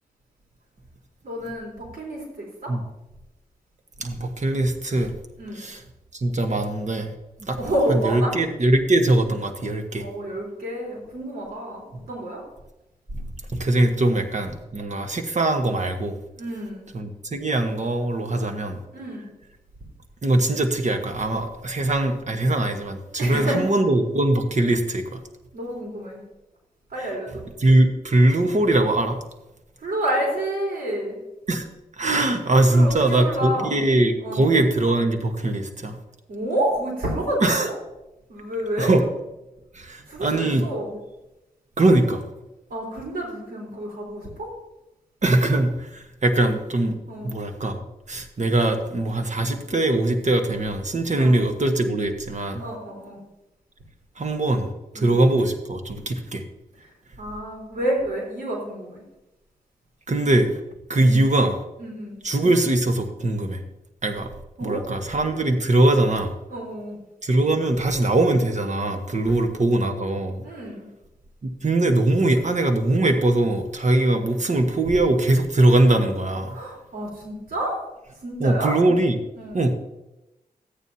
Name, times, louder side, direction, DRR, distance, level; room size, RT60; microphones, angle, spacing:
voice 1, 1.2-2.7 4.1-4.2 5.4-5.6 7.6-8.4 10.0-12.4 16.3-16.8 18.9-19.3 23.2-23.6 25.5-26.2 26.9-27.4 29.8-31.2 32.7-33.8 34.2-34.5 36.3-37.7 38.3-38.9 40.1-41.0 42.7-44.5 47.1-47.3 51.1-51.3 52.5-53.2 54.9-55.3 56.8-59.0 61.0-61.2 61.8-62.1 64.6-64.9 66.5-67.0 69.2-69.3 70.4-70.8 76.5-78.8 79.4-79.6, right 1 dB, 80° right, -3 dB, 3.8 m, -29 dB
voice 2, 4.0-5.1 5.5-5.8 6.1-7.1 7.4-7.6 7.9-10.1 13.5-16.2 16.9-18.8 20.2-25.2 27.6-29.2 31.5-31.7 32.0-36.0 37.4-37.7 38.8-39.0 39.7-40.6 41.8-42.2 45.2-47.0 47.2-47.8 48.1-52.6 54.2-56.4 60.1-60.5 60.9-61.6 62.2-63.6 64.0-64.3 64.6-66.3 67.2-70.4 71.4-76.6 78.4-79.2 79.5-79.7, right 2 dB, 50° right, 6 dB, 1.3 m, -21 dB
13.5 x 9.1 x 2.8 m, 0.94 s
cardioid pair, 50°, 15 cm